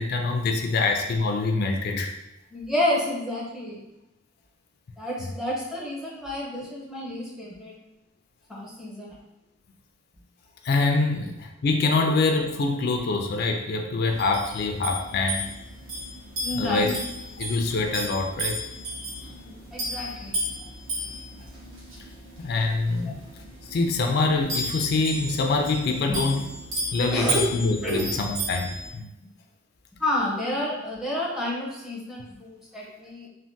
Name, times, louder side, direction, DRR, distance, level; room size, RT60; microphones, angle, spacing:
voice 1, 0.0-2.1 10.6-15.5 16.6-17.0 17.4-18.6 22.4-23.2 23.6-26.4 26.9-29.1, left 3 dB, 50° left, 3 dB, 0.3 m, -25 dB
voice 2, 2.5-3.8 5.0-7.8 8.5-9.2 12.0-12.1 16.4-17.0 19.4-20.4 23.1-23.2 26.1-26.2 27.1-27.5 27.8-28.1 30.0-33.3, left 1 dB, ahead, -5 dB, 0.6 m, -30 dB
sound 1, 14.1-28.9, equal, 65° right, 1.0 m, -34 dB
3.3 x 2.1 x 2.6 m, 0.93 s
head